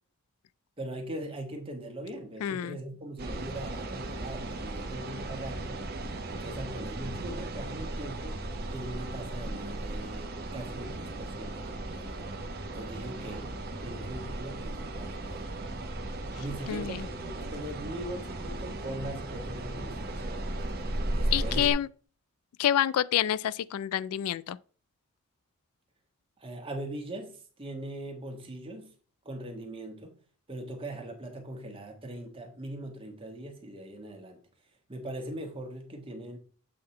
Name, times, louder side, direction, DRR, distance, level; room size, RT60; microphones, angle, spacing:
voice 1, 0.8-5.8 6.3-8.4 8.7-12.3 12.7-15.5 16.3-20.4 21.1-21.7 26.4-28.9 29.2-30.2 30.5-34.4 34.9-36.4, right 1 dB, 25° right, 1.4 m, -41 dB
voice 2, 2.4-2.8 16.7-17.0 21.3-21.9 22.6-24.6, left 10 dB, 85° left, 0.3 m, -28 dB
sound 1, 3.2-21.7, right 1 dB, 45° right, 1.0 m, -36 dB
7.7 x 3.7 x 4.3 m
head